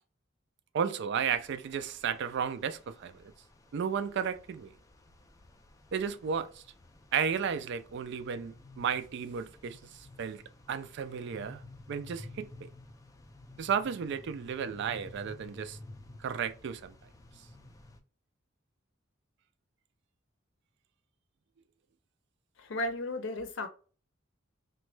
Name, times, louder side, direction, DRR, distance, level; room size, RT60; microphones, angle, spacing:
voice 1, 0.7-3.3 3.7-4.7 5.9-6.6 7.1-9.8 10.2-10.4 10.7-11.6 11.9-12.5 13.6-15.8 16.2-16.9, right 7 dB, 60° right, 0.3 m, -33 dB
sound 1, 1.1-18.0, left 2 dB, 15° left, 0.3 m, -53 dB
voice 2, 22.6-23.7, left 1 dB, 65° left, 0.6 m, -34 dB
3.0 x 2.2 x 3.1 m
head